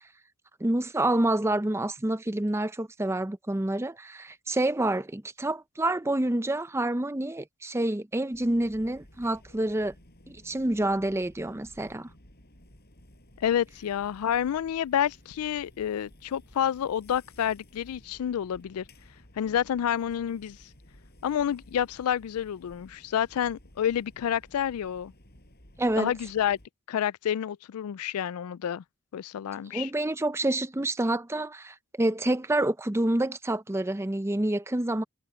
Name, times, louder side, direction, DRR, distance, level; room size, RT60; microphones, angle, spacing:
voice 1, 0.6-9.9 10.3-12.1 25.8-26.1 29.7-35.0, right 1 dB, 10° right, 0.5 m, -28 dB
sound 1, 8.3-26.7, left 1 dB, 45° left, 7.0 m, -55 dB
voice 2, 13.4-18.8 19.4-20.6 21.2-25.1 26.0-26.6 26.9-28.8 29.1-29.9, left 9 dB, 90° left, 0.3 m, -29 dB
head